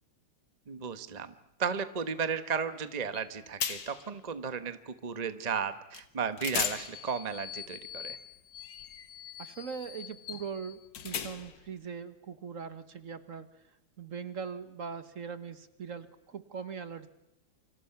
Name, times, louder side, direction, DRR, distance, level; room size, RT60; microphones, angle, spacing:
voice 1, 0.7-1.3 1.6-8.2, right 6 dB, 30° right, 11 dB, 0.9 m, -34 dB
sound 1, 3.1-3.3 3.6-4.1 5.9-6.1 6.4-11.7, left 8 dB, 80° left, 2.0 m, -38 dB
voice 2, 9.4-13.5 14.0-17.1, right 6 dB, 50° right, 12 dB, 1.4 m, -41 dB
28.0 x 26.5 x 5.9 m, 0.87 s
omnidirectional pair, 2.0 m